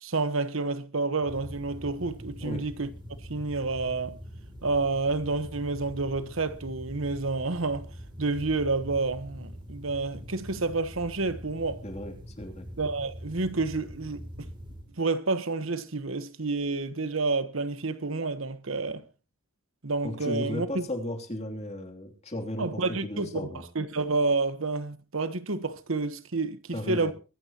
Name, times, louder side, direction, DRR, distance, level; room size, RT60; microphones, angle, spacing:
voice 1, 0.0-2.9 3.3-4.2 4.6-7.9 8.2-11.8 12.8-14.5 15.0-19.0 19.8-20.8 22.6-27.1, right 3 dB, 70° right, 1.2 m, -29 dB
sound 1, 1.2-14.9, equal, 25° right, 2.9 m, -43 dB
voice 2, 11.8-12.7 20.0-23.6 26.7-27.1, left 1 dB, 30° left, 3.0 m, -35 dB
23.5 x 12.5 x 3.0 m
head